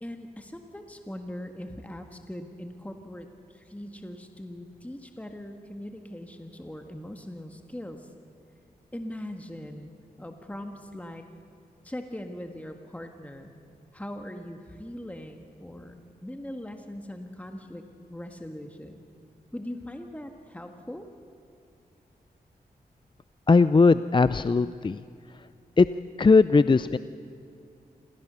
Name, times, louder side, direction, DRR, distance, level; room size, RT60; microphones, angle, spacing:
voice 1, 0.0-8.1 8.9-9.9 10.2-11.2 11.8-13.5 13.9-17.8 18.1-19.1 19.5-21.1, left 1 dB, 10° left, 5 dB, 1.6 m, -40 dB
voice 2, 23.5-25.0 25.8-25.9 26.2-27.0, left 4 dB, 30° left, 14 dB, 0.5 m, -19 dB
27.0 x 16.5 x 6.9 m, 2.6 s
cardioid pair, 45°, 17 cm